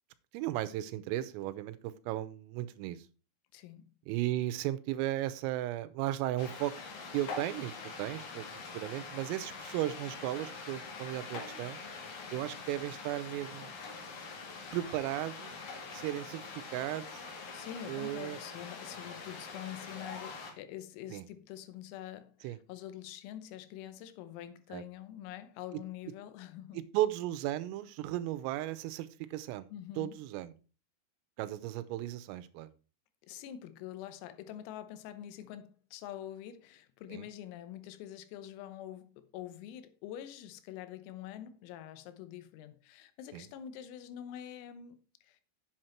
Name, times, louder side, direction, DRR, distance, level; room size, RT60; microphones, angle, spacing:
voice 1, 0.3-3.1 4.1-6.7 7.1-7.7 8.0-8.5 8.7-11.8 12.3-13.7 14.7-15.5 15.9-16.4 16.7-17.3 17.9-18.4 21.1-21.3 22.4-22.6 24.7-24.8 26.7-30.5 31.4-32.7 37.1-37.2 43.3-43.5, right 14 dB, 90° right, 3.4 m, -35 dB
voice 2, 3.5-4.0 17.5-26.8 29.7-30.2 33.3-45.4, left 11 dB, 90° left, 3.6 m, -46 dB
sound 1, 6.4-20.5, left 4 dB, 55° left, 2.8 m, -44 dB
8.1 x 7.8 x 4.3 m
omnidirectional pair, 5.9 m